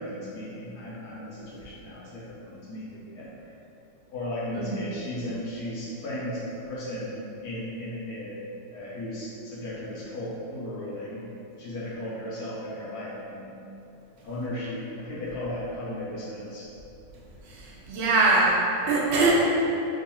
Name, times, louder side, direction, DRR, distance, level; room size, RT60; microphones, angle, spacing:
voice 1, 0.0-3.3 4.1-8.4 8.7-11.2 11.5-13.5 14.2-16.7, left 1 dB, 70° left, -6 dB, 1.0 m, -35 dB
voice 2, 17.4-18.6 18.9-19.3, right 3 dB, 70° right, -5 dB, 0.6 m, -22 dB
3.0 x 2.4 x 4.2 m, 2.9 s
omnidirectional pair, 1.9 m